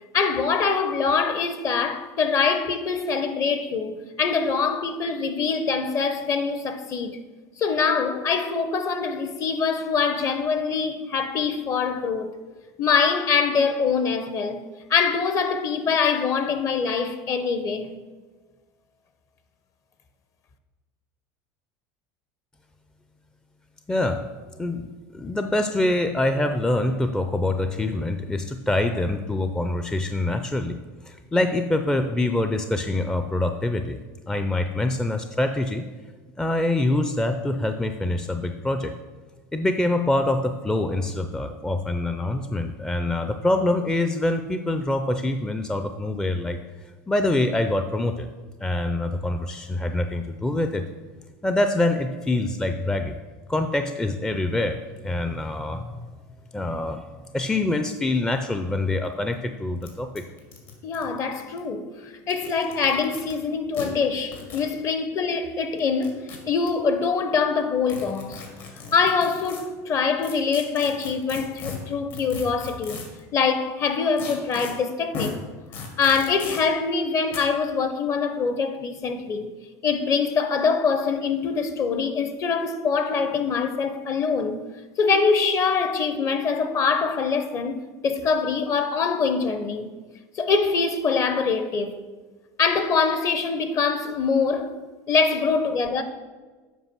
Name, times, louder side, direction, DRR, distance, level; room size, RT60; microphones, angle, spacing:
voice 1, 0.1-7.2 7.6-12.3 12.8-17.9 60.8-68.4 68.9-73.0 73.3-75.4 76.0-79.5 79.8-84.6 85.0-89.9 90.3-92.0 92.6-94.8 95.1-96.0, left 5 dB, 40° left, 0.9 m, -24 dB
voice 2, 23.9-24.3 24.6-30.7 31.1-34.0 34.3-35.9 36.4-38.9 39.5-46.6 47.1-48.3 48.6-50.8 51.4-53.1 53.5-54.8 55.0-56.0 56.5-57.0 57.3-60.2, left 2 dB, 10° left, 0.5 m, -25 dB
sound 1, 59.1-59.2 59.3-59.4 59.8-59.9 60.2-61.6 62.2-63.3 63.7-63.9 64.3-64.7 65.8-66.7 67.9-69.6 70.2-73.2 74.2-74.7 75.1-75.3 75.7-76.6 77.3-77.4, left 5 dB, 65° left, 2.2 m, -37 dB
8.1 x 5.1 x 6.1 m
supercardioid pair, 115°, 8 cm